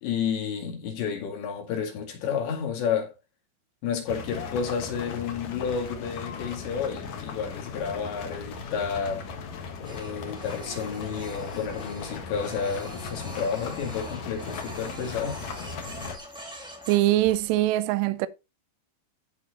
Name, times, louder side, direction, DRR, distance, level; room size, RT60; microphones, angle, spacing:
voice 1, 0.0-3.1 3.8-9.2 9.8-15.4, left 6 dB, 75° left, 4.4 m, -31 dB
sound 1, 4.1-16.2, left 5 dB, 55° left, 2.1 m, -38 dB
Printer, 9.8-17.7, equal, ahead, 1.1 m, -43 dB
voice 2, 16.9-18.3, right 15 dB, 80° right, 2.7 m, -22 dB
14.0 x 4.7 x 4.1 m
omnidirectional pair, 5.2 m